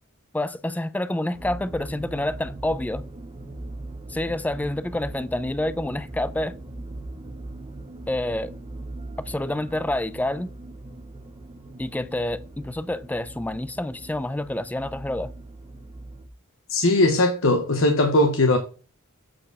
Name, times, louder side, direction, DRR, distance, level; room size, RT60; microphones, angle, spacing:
voice 1, 0.3-3.1 4.1-6.5 8.1-8.5 9.2-10.5 11.8-15.3, left 1 dB, 5° left, 0.4 m, -28 dB
sound 1, 1.3-16.3, right 2 dB, 25° right, 0.8 m, -40 dB
voice 2, 16.7-18.6, left 2 dB, 70° left, 0.8 m, -19 dB
7.6 x 4.4 x 4.8 m
head